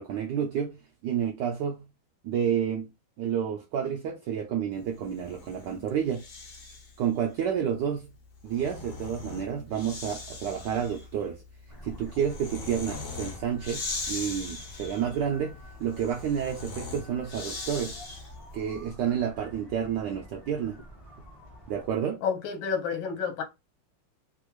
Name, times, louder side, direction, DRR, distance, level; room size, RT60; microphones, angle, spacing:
voice 1, 0.0-1.9 2.2-2.9 3.2-6.2 7.0-8.1 8.4-11.4 11.8-18.0 18.5-20.8 21.7-22.2, right 8 dB, 75° right, 1.0 m, -30 dB
Breathing, 5.0-7.0 8.2-18.5, left 3 dB, 55° left, 1.0 m, -40 dB
sound 1, 11.7-21.9, equal, 30° left, 0.4 m, -48 dB
voice 2, 22.2-23.4, left 6 dB, 70° left, 1.4 m, -29 dB
3.4 x 2.4 x 3.0 m
omnidirectional pair, 2.3 m